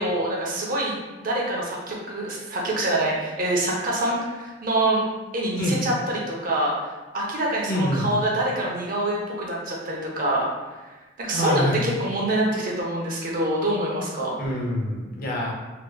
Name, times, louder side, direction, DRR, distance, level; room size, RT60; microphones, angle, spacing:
voice 1, 0.0-5.0 5.3-6.7 7.1-10.4 11.2-14.4, right 1 dB, 50° right, -3 dB, 0.7 m, -25 dB
voice 2, 7.7-8.0 11.3-11.8 14.4-15.5, equal, 50° left, -2 dB, 0.7 m, -25 dB
3.3 x 2.9 x 2.2 m, 1.2 s
head